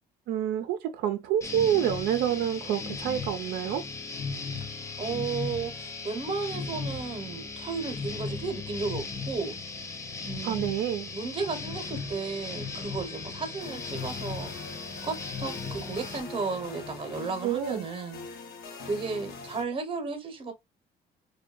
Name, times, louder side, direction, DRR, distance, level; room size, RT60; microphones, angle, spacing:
voice 1, 0.3-3.8 10.4-11.1 17.4-17.8, right 10 dB, 80° right, 0.4 m, -28 dB
sound 1, 1.4-16.2, left 4 dB, 20° left, 0.4 m, -37 dB
voice 2, 5.0-9.5 10.2-10.7 11.1-18.3 18.8-20.5, right 4 dB, 30° right, 0.8 m, -34 dB
sound 2, 11.4-17.3, left 4 dB, 90° left, 1.1 m, -48 dB
sound 3, 13.6-19.6, left 4 dB, 70° left, 0.7 m, -44 dB
2.6 x 2.2 x 2.3 m
cardioid pair, 110°, 17 cm